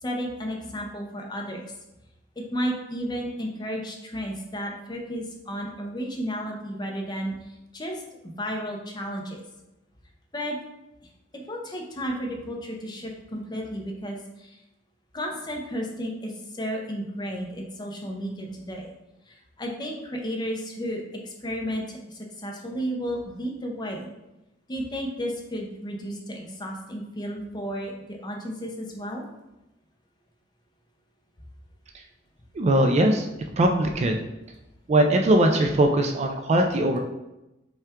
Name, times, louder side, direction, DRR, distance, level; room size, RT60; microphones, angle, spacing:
voice 1, 0.0-1.6 2.4-9.4 10.3-10.6 11.5-14.6 15.1-18.9 19.3-24.1 24.7-29.2, equal, 20° left, 0 dB, 0.7 m, -33 dB
voice 2, 32.5-33.3 33.6-34.2 34.9-37.0, right 1 dB, 35° right, 4 dB, 0.3 m, -20 dB
5.5 x 2.3 x 3.5 m, 0.94 s
head